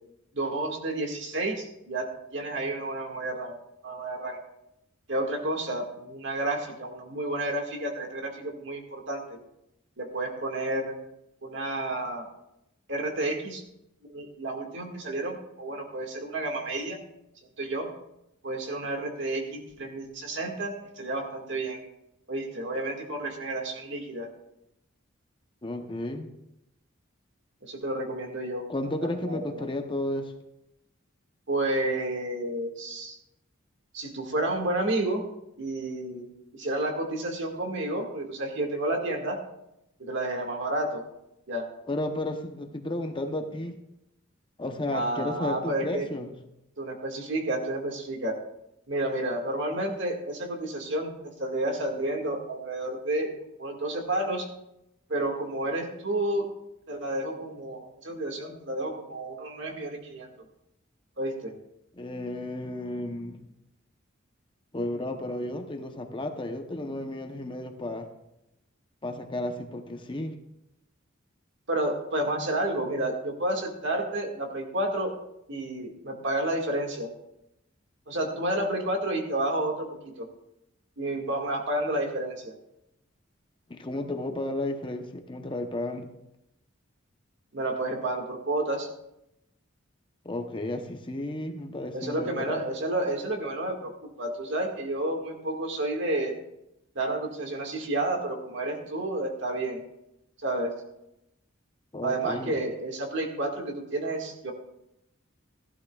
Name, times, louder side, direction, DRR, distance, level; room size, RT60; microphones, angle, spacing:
voice 1, 0.3-3.6 3.8-4.4 5.1-9.4 10.0-10.9 11.4-12.3 12.9-13.6 14.1-17.0 17.6-17.9 18.4-21.8 22.3-24.3 27.6-28.6 29.0-29.6 31.5-33.2 33.9-35.2 35.6-36.3 36.5-39.4 40.0-41.0 41.5-41.7 44.9-46.1 46.8-48.4 48.9-51.1 51.4-53.3 53.6-54.5 55.1-56.5 56.9-60.3 61.2-61.5 71.7-75.1 75.5-77.1 78.1-79.9 80.2-80.3 81.0-82.5 87.5-88.9 91.9-93.9 94.2-96.3 97.0-99.8 100.4-100.7 102.0-104.5, right 1 dB, 60° right, 2 dB, 1.9 m, -30 dB
voice 2, 25.6-26.3 28.7-30.3 41.9-43.8 44.6-46.3 61.9-63.4 64.7-68.1 69.0-70.4 83.7-86.1 90.2-92.6 101.9-102.6, left 1 dB, 25° left, 5 dB, 0.8 m, -33 dB
16.0 x 12.0 x 2.4 m, 0.85 s
head